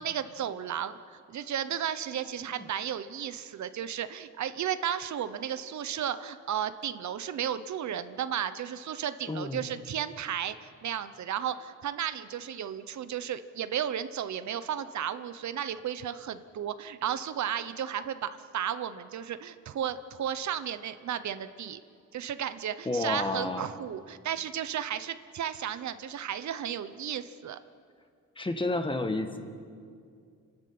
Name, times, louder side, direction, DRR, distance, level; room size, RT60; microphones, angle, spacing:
voice 1, 0.0-21.8 22.1-27.6, right 9 dB, 70° right, 12 dB, 0.9 m, -34 dB
voice 2, 9.3-9.6 22.8-23.7 28.4-29.4, left 2 dB, 15° left, 7 dB, 1.4 m, -30 dB
30.0 x 12.5 x 8.7 m, 2.2 s
wide cardioid pair, 145°, 30 cm